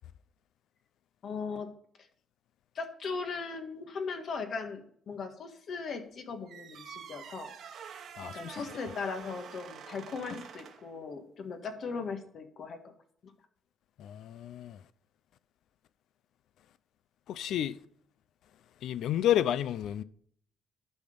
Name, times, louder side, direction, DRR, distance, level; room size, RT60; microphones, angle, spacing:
voice 1, 1.2-1.7 2.7-7.5 8.2-12.9, left 4 dB, 60° left, 1.5 m, -38 dB
sound 1, 6.5-10.9, right 7 dB, 70° right, 1.2 m, -47 dB
voice 2, 8.2-8.6 14.0-14.8 17.3-17.8 18.8-20.0, left 11 dB, 75° left, 0.4 m, -30 dB
11.5 x 4.4 x 5.1 m
cardioid pair, 90°, 0 cm